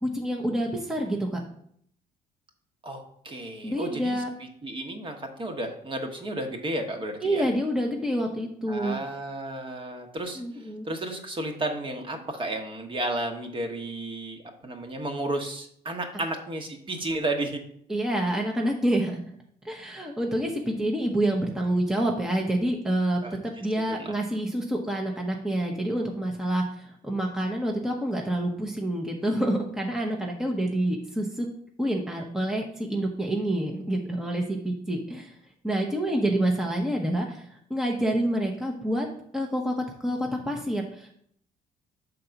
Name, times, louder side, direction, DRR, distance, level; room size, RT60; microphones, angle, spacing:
voice 1, 0.0-1.4 3.6-4.3 7.2-9.0 10.4-10.8 17.9-19.2 19.6-31.5 31.8-35.4 35.6-39.1 39.3-39.7 40.0-41.1, right 1 dB, 5° right, 0 dB, 0.8 m, -27 dB
voice 2, 2.8-4.2 4.6-7.5 8.7-10.4 10.8-17.6 23.2-23.4 24.0-24.1, right 1 dB, 30° right, 4 dB, 1.2 m, -32 dB
6.8 x 3.9 x 5.8 m, 0.66 s
cardioid pair, 110°, 17 cm